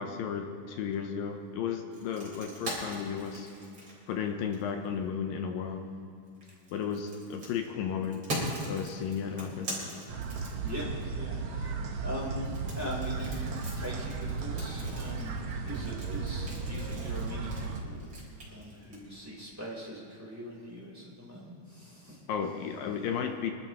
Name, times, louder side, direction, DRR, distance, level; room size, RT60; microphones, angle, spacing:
voice 1, 0.0-3.5 4.1-5.9 6.7-8.3 8.7-9.7 22.3-23.5, left 7 dB, 75° left, 4 dB, 2.4 m, -34 dB
sound 1, 1.9-4.9 6.3-11.0 12.5-19.0, right 1 dB, 30° right, 4.8 m, -40 dB
sound 2, 10.1-17.8, right 4 dB, 80° right, 1.3 m, -35 dB
voice 2, 10.6-13.5 13.8-15.4 15.6-18.1 18.4-22.2, equal, 5° right, -4 dB, 3.0 m, -41 dB
26.0 x 12.5 x 3.0 m, 2.5 s
omnidirectional pair, 4.4 m